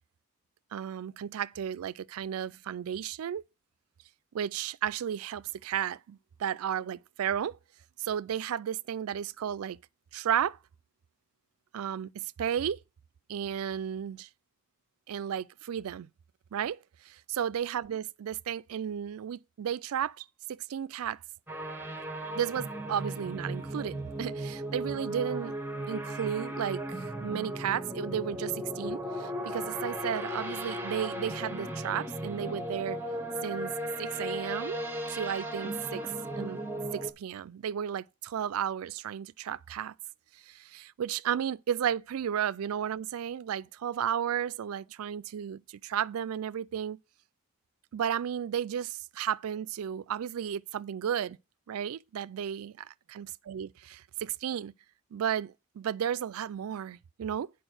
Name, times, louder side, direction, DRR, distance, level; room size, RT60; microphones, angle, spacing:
voice 1, 0.7-3.4 4.3-7.6 8.0-9.8 10.1-10.6 11.7-12.8 13.3-14.3 15.1-16.1 16.5-16.8 17.0-21.2 22.4-25.5 25.9-33.0 33.4-33.7 34.0-34.8 35.1-36.6 36.9-39.9 40.5-47.0 47.9-51.4 51.7-54.7 55.1-57.5, right 9 dB, 90° right, 0.4 m, -33 dB
sound 1, 21.5-37.1, right 1 dB, 10° right, 1.1 m, -36 dB
9.0 x 4.7 x 6.2 m
head